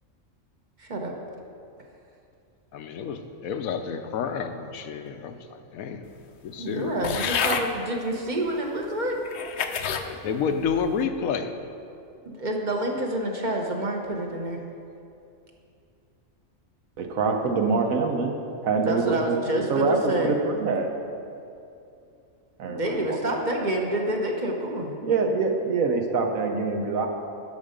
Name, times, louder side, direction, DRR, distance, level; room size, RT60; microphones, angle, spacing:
voice 1, 0.8-1.1 6.6-9.2 12.2-14.6 18.8-20.3 22.7-24.9, right 1 dB, 35° right, 1 dB, 1.1 m, -28 dB
voice 2, 2.7-5.4 5.7-6.0 6.4-7.2 10.0-11.5, left 6 dB, 85° left, 7 dB, 1.1 m, -29 dB
sound 1, 7.0-7.7 8.5-8.6 9.3-10.1 10.6-11.0, left 7 dB, 60° left, 0.8 m, -28 dB
voice 3, 17.0-18.4 18.6-19.4 19.7-20.9 22.6-23.2 25.0-27.1, right 4 dB, 80° right, 4 dB, 1.3 m, -25 dB
11.0 x 6.7 x 5.1 m, 2.6 s
omnidirectional pair, 1.4 m